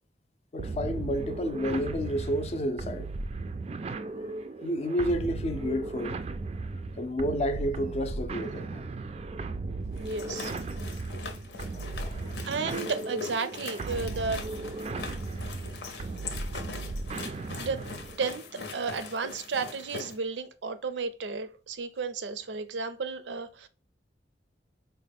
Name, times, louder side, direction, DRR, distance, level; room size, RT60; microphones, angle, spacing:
voice 1, 0.5-3.1 4.6-6.2 7.0-8.8 11.8-12.3 17.6-17.7, equal, 35° left, 0.4 m, -30 dB
sound 1, 0.6-18.2, right 3 dB, 35° right, 0.3 m, -36 dB
sound 2, 9.9-20.2, left 4 dB, 75° left, 0.7 m, -42 dB
voice 2, 10.0-10.5 12.4-14.4 17.2-17.8 18.2-23.7, right 4 dB, 85° right, 0.5 m, -33 dB
4.1 x 2.1 x 3.4 m
head